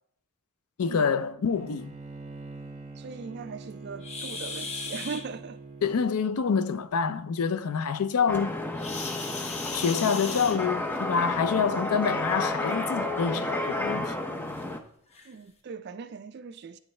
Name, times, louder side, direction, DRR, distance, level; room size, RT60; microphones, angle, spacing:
voice 1, 0.8-1.9 5.8-8.6 9.7-14.1, left 6 dB, 85° left, 0.5 m, -27 dB
Bowed string instrument, 1.5-6.0, right 3 dB, 30° right, 1.6 m, -44 dB
voice 2, 3.0-5.9 15.3-16.8, right 5 dB, 50° right, 0.3 m, -40 dB
sound 1, 4.0-5.2 8.7-11.0 12.2-12.4 13.0-13.1 13.6-13.7 14.5-14.6 15.1-15.3, left 4 dB, 30° left, 0.8 m, -37 dB
sound 2, 8.3-14.8, left 2 dB, 10° left, 0.5 m, -31 dB
9.1 x 6.4 x 3.2 m
head